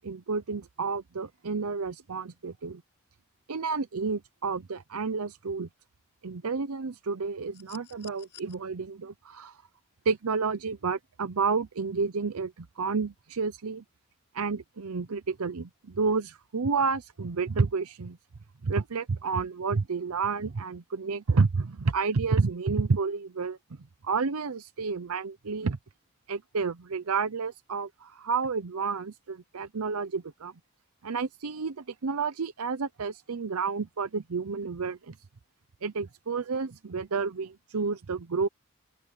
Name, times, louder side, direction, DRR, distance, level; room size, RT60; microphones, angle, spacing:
voice 1, 0.0-2.8 3.5-5.7 6.2-9.6 10.0-13.8 14.3-18.2 18.6-23.6 24.0-25.8 26.3-30.5 31.0-35.1 35.8-38.5, right 4 dB, 85° right, 0.7 m, -30 dB
sound 1, 7.5-8.6 10.1-10.2, left 10 dB, 55° left, 6.4 m, -51 dB
open air
head